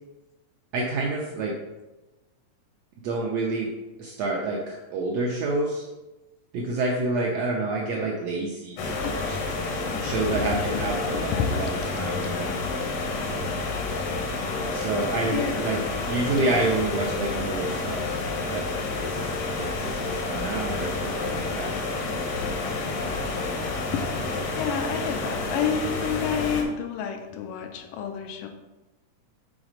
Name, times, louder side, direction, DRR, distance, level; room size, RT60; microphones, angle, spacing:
voice 1, 0.7-1.5 3.0-3.7 4.0-5.8 6.5-9.5 10.0-11.0 11.5-12.6 14.0-14.1 14.7-18.0 18.5-18.6 18.9-19.3 19.6-21.7, right 2 dB, 75° right, -2 dB, 1.5 m, -28 dB
sound 1, 8.8-26.6, left 3 dB, 65° left, 1.6 m, -29 dB
voice 2, 9.8-12.1 12.4-12.8 15.3-15.8 16.4-16.7 23.9-24.0 24.6-28.5, left 7 dB, 85° left, 4 dB, 2.3 m, -30 dB
6.2 x 4.0 x 5.0 m, 1.1 s
omnidirectional pair, 3.8 m